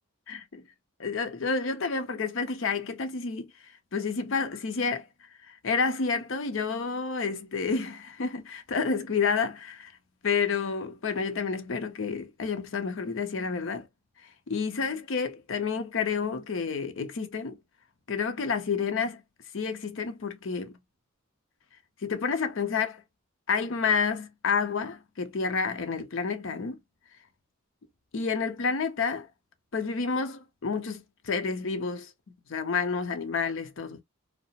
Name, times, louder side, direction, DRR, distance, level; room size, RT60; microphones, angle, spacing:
voice 1, 0.3-0.6 1.0-3.5 3.9-5.1 5.5-9.9 10.2-13.9 14.5-17.6 18.1-19.2 19.5-20.7 22.0-23.0 23.5-26.8 28.1-29.3 29.7-32.1 32.5-34.0, left 5 dB, 65° left, 0.5 m, -29 dB
2.7 x 2.0 x 2.7 m
head